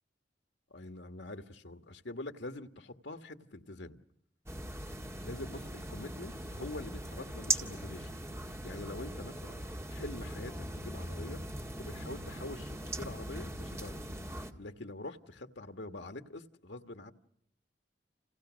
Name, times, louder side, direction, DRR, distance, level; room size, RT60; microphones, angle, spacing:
voice 1, 0.7-4.0 5.2-8.2 8.6-11.4 11.8-14.0 14.6-17.1, left 2 dB, 75° left, 1.6 m, -45 dB
sound 1, 4.5-14.5, right 1 dB, 15° right, 1.8 m, -40 dB
30.0 x 28.5 x 6.3 m
head